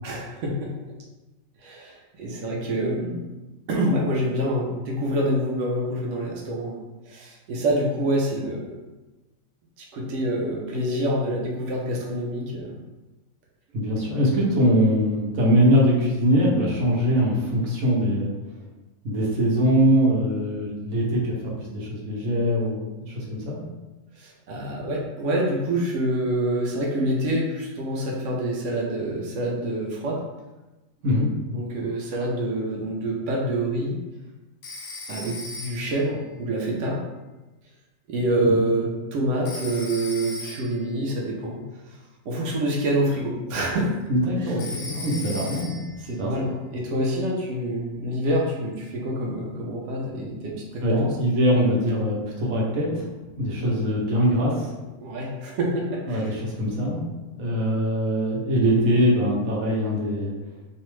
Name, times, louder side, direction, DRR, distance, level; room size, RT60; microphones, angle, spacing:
voice 1, 0.0-0.5 1.6-3.3 3.7-6.8 7.1-8.8 9.9-12.8 24.2-30.2 31.5-34.0 35.1-37.0 38.1-41.6 42.3-43.9 44.4-44.5 46.0-50.5 50.9-51.1 55.0-56.3, right 1 dB, 70° right, -2 dB, 0.9 m, -26 dB
voice 2, 13.7-18.3 19.0-21.3 21.6-23.6 31.0-31.3 38.4-38.5 44.1-45.8 46.2-46.5 50.8-53.1 53.4-54.7 56.1-57.0 57.3-60.3, equal, 85° right, -3 dB, 1.1 m, -22 dB
Telephone, 34.6-36.1 39.5-40.9 44.6-46.0, left 2 dB, 65° left, 0.7 m, -37 dB
2.7 x 2.1 x 3.0 m, 1.1 s
omnidirectional pair, 1.4 m